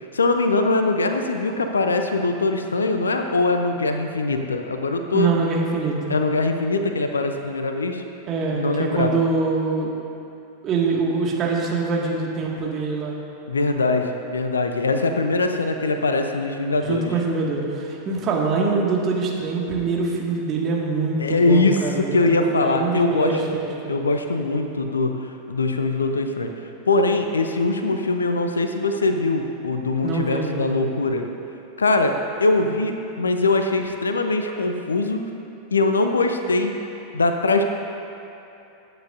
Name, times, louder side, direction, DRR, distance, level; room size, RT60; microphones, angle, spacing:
voice 1, 0.1-5.3 6.1-8.0 8.5-9.1 13.5-17.1 21.2-23.4 23.9-26.5 26.9-31.3 31.8-35.3 35.7-36.8 37.1-37.6, left 3 dB, 75° left, 6 dB, 0.7 m, -22 dB
voice 2, 5.1-6.1 8.3-9.9 10.6-13.2 16.8-24.0 30.0-30.8, right 4 dB, 30° right, -2 dB, 2.0 m, -24 dB
21.0 x 9.0 x 2.7 m, 2.9 s
figure-of-eight pair, 90°, 0 cm